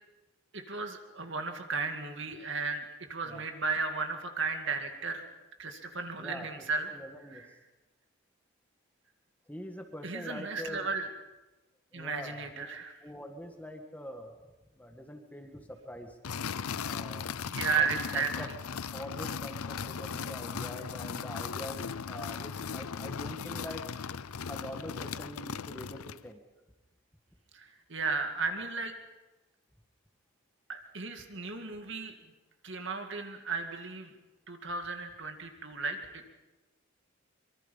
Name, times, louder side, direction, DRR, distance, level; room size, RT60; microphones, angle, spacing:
voice 1, 0.5-5.2 5.6-6.9 7.3-7.5 10.0-11.1 11.9-12.9 17.5-18.3 27.5-28.9 30.7-32.1 32.6-34.1 34.5-36.3, right 4 dB, 55° right, 5 dB, 2.2 m, -34 dB
voice 2, 6.2-6.7 6.9-7.4 9.5-10.9 11.9-14.4 14.8-16.2 16.8-17.2 17.8-18.5 18.9-23.8 24.5-26.4, equal, 5° left, 4 dB, 1.6 m, -44 dB
sound 1, 16.2-26.3, left 6 dB, 80° left, 0.6 m, -37 dB
25.0 x 23.5 x 5.5 m, 1.1 s
head